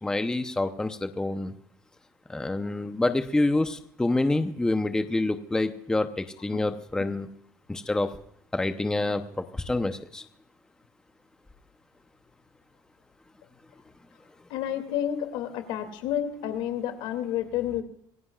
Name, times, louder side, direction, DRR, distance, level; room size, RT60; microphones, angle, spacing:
voice 1, 0.0-1.5 2.3-7.3 7.7-8.2 8.5-10.2, left 2 dB, 10° left, 8 dB, 0.8 m, -27 dB
voice 2, 14.5-17.8, left 10 dB, 75° left, 7 dB, 2.5 m, -30 dB
26.0 x 17.0 x 2.4 m, 0.67 s
cardioid pair, 145°, 9 cm